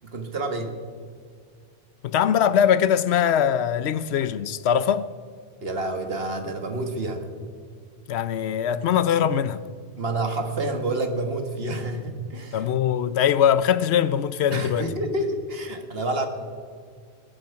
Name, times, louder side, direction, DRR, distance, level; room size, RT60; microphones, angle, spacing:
voice 1, 0.0-0.8 5.6-7.3 10.0-12.7 14.5-16.3, right 2 dB, 65° right, 1.8 m, -28 dB
voice 2, 2.0-5.1 8.1-9.6 12.5-14.9, left 9 dB, 75° left, 0.9 m, -22 dB
21.0 x 9.0 x 5.7 m
omnidirectional pair, 1.1 m